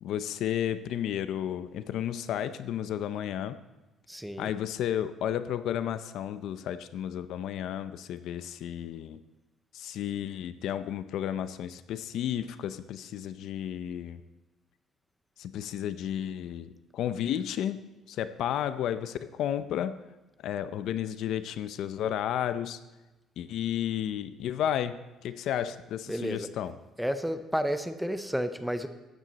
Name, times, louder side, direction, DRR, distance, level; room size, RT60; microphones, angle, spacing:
voice 1, 0.0-3.6 4.4-9.2 9.7-14.2 15.4-20.0 20.4-22.8 23.4-26.7, left 10 dB, 65° left, 13 dB, 0.5 m, -32 dB
voice 2, 4.1-4.5 26.1-26.5 27.0-28.9, equal, ahead, 10 dB, 0.6 m, -31 dB
13.5 x 9.2 x 4.1 m, 1.1 s
cardioid pair, 145°, 0 cm